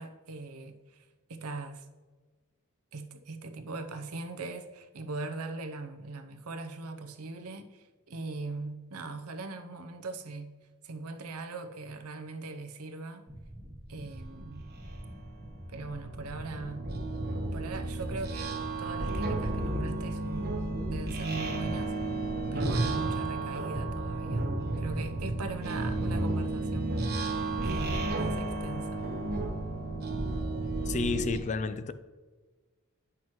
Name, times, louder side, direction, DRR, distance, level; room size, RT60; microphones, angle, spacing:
voice 1, 0.0-1.9 2.9-10.5 10.8-13.3 13.9-14.7 15.7-16.9 17.5-20.6 20.9-22.2 22.5-24.5 24.8-27.2 27.6-29.0, right 3 dB, 80° right, 0.7 m, -40 dB
sound 1, 13.3-30.2, right 1 dB, 15° right, 0.7 m, -46 dB
sound 2, 14.4-14.5 14.9-31.4, right 2 dB, 45° right, 1.0 m, -32 dB
voice 2, 30.9-31.9, left 4 dB, 30° left, 0.3 m, -30 dB
9.0 x 6.0 x 3.1 m
head